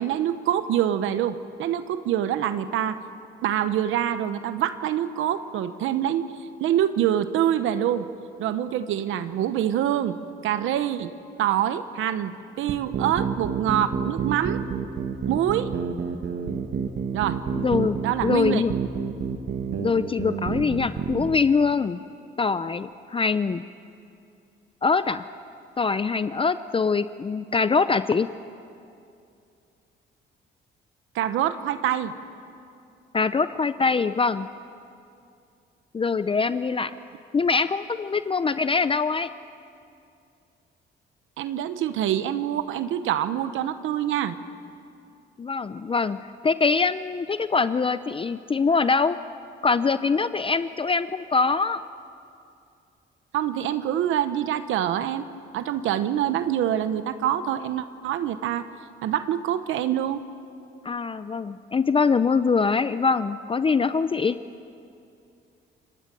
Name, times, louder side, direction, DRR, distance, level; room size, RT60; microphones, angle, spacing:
voice 1, 0.0-3.0 3.4-6.3 6.6-8.1 8.4-10.2 10.4-11.1 11.4-14.6 15.3-15.7 17.1-17.4 18.0-18.6 31.1-32.1 41.4-44.4 53.3-55.3 55.5-58.7 59.0-60.2, right 11 dB, 85° right, 11 dB, 1.0 m, -25 dB
sound 1, 12.7-21.4, right 7 dB, 70° right, 1.8 m, -29 dB
voice 2, 17.6-18.7 19.8-22.0 22.4-23.6 24.8-25.2 25.8-28.3 33.1-34.5 35.9-36.9 37.3-39.3 45.4-46.2 46.4-49.2 49.6-51.8 60.8-64.4, left 4 dB, 25° left, 13 dB, 0.6 m, -23 dB
29.5 x 17.5 x 7.6 m, 2.5 s
cardioid pair, 90°, 20 cm